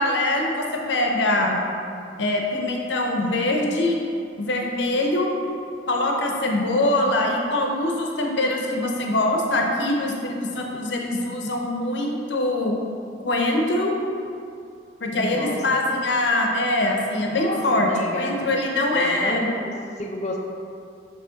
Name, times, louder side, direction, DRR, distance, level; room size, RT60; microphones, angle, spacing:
voice 1, 0.0-1.6 2.2-4.0 4.4-5.3 5.9-12.7 13.2-13.9 15.0-19.5, left 1 dB, 75° left, 1 dB, 0.8 m, -23 dB
voice 2, 15.1-15.6 17.3-18.4 18.9-20.4, left 1 dB, 40° left, 0 dB, 0.5 m, -30 dB
6.2 x 3.3 x 5.7 m, 2.4 s
head